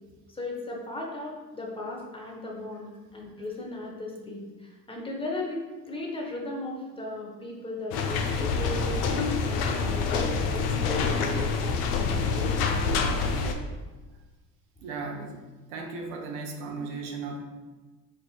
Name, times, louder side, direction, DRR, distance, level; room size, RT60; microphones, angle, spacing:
voice 1, 0.3-13.0, left 2 dB, 10° left, -1 dB, 0.7 m, -37 dB
sound 1, 7.9-13.5, left 4 dB, 70° left, 0.5 m, -26 dB
voice 2, 14.8-17.4, right 4 dB, 65° right, 2 dB, 0.8 m, -36 dB
4.7 x 2.4 x 2.3 m, 1.2 s
hypercardioid pair, 65°, 49 cm